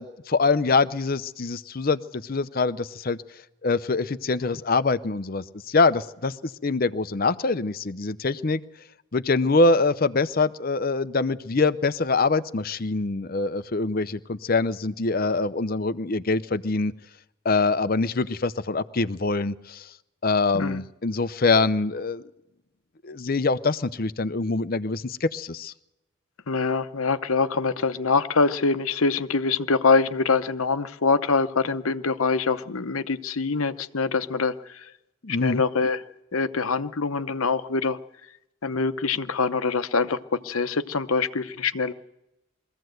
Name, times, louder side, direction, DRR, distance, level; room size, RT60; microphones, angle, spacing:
voice 1, 0.0-3.2 3.6-8.6 9.1-16.9 17.4-19.9 20.2-22.2 23.0-25.7 35.2-35.6, left 3 dB, 40° left, 14 dB, 0.6 m, -24 dB
voice 2, 26.5-34.5 35.4-36.0 36.3-38.0 38.6-41.9, left 4 dB, 75° left, 11 dB, 0.9 m, -24 dB
22.5 x 15.5 x 7.9 m, 0.90 s
head